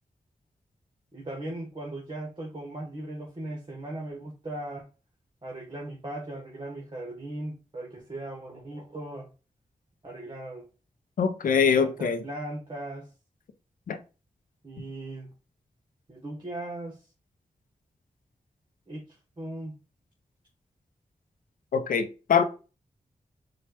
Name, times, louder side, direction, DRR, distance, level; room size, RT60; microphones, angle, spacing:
voice 1, 1.1-4.9 5.4-9.3 10.0-10.7 11.8-13.1 14.6-15.3 16.1-17.1 18.9-19.8, right 1 dB, 35° right, 1.2 m, -38 dB
voice 2, 11.2-12.2 13.9-14.0 21.7-22.4, left 6 dB, 90° left, 0.6 m, -23 dB
4.3 x 2.4 x 4.6 m
cardioid pair, 50°, 14 cm